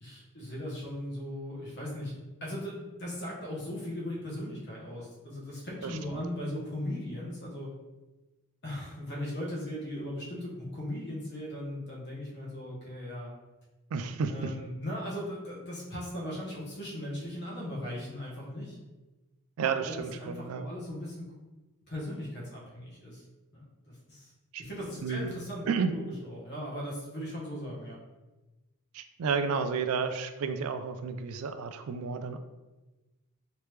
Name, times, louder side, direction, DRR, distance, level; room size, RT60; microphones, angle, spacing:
voice 1, 0.0-2.1 2.4-7.7 8.6-13.3 14.3-18.8 19.8-21.3 21.9-23.2 23.5-24.3 24.6-28.0, left 1 dB, 50° left, -4 dB, 1.0 m, -38 dB
voice 2, 13.9-14.5 19.6-20.7 24.5-24.6 25.0-25.3 25.7-25.9 28.9-32.4, right 5 dB, 70° right, 9 dB, 0.3 m, -31 dB
3.3 x 2.9 x 3.2 m, 1.1 s
head